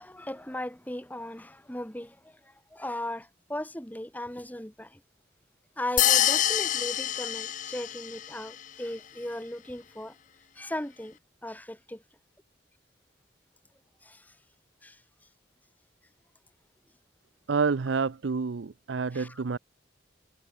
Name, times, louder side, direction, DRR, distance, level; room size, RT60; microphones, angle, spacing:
voice 1, 0.0-5.0 5.8-10.1 10.5-12.0 14.0-14.3 14.8-15.0 19.1-19.4, left 1 dB, 10° left, 1.6 m, -37 dB
sound 1, 6.0-8.3, left 12 dB, 45° left, 0.5 m, -25 dB
voice 2, 17.5-19.6, right 5 dB, 90° right, 0.6 m, -28 dB
head